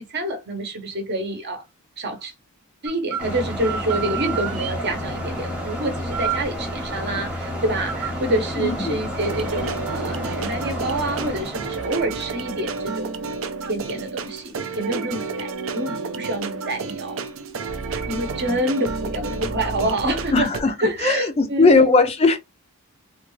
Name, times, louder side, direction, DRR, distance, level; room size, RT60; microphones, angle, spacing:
voice 1, 0.0-1.6 2.0-2.3 2.8-13.1 13.7-17.2 17.9-20.5 20.8-22.1, right 1 dB, 50° right, 0.8 m, -27 dB
sound 1, 2.9-3.3 3.6-4.8 6.1-6.5 7.9-8.1, right 8 dB, 85° right, 1.1 m, -29 dB
sound 2, 3.2-13.4, equal, 5° right, 0.8 m, -31 dB
voice 2, 8.6-9.0 20.3-20.7 21.0-22.4, left 3 dB, 25° left, 0.4 m, -18 dB
sound 3, 9.2-20.6, right 4 dB, 65° right, 0.5 m, -31 dB
3.5 x 2.3 x 3.1 m
head